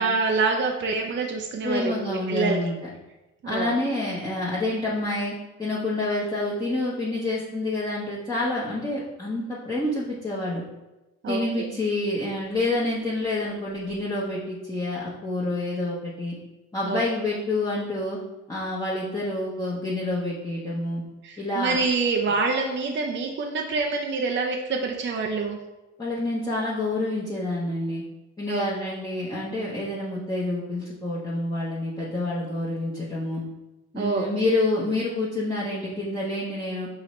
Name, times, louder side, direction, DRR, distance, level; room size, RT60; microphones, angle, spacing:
voice 1, 0.0-2.7 3.4-3.7 11.2-11.4 16.8-17.0 21.2-25.6 28.5-28.6 33.9-34.3, right 4 dB, 40° right, 1 dB, 0.5 m, -26 dB
voice 2, 1.6-2.7 3.5-5.3 5.6-10.6 11.3-16.4 16.7-18.2 18.5-21.0 21.4-21.8 26.0-28.0 28.4-33.4 33.9-36.9, left 2 dB, 10° left, -8 dB, 1.0 m, -28 dB
5.8 x 2.7 x 3.1 m, 1.0 s
cardioid pair, 90°, 30 cm